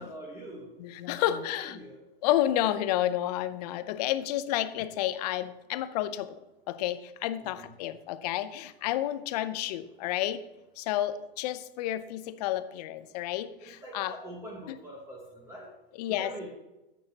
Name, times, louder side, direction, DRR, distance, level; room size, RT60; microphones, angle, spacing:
voice 1, 0.0-0.7 1.2-2.0 7.4-7.7 13.6-15.7 16.1-16.5, right 1 dB, 10° right, -1 dB, 1.3 m, -44 dB
voice 2, 0.8-1.8 2.2-6.4 6.7-10.4 10.8-14.1 14.7-14.8 16.0-16.3, left 13 dB, 40° left, 13 dB, 0.7 m, -30 dB
15.0 x 6.4 x 2.9 m, 1.0 s
hypercardioid pair, 130°, 31 cm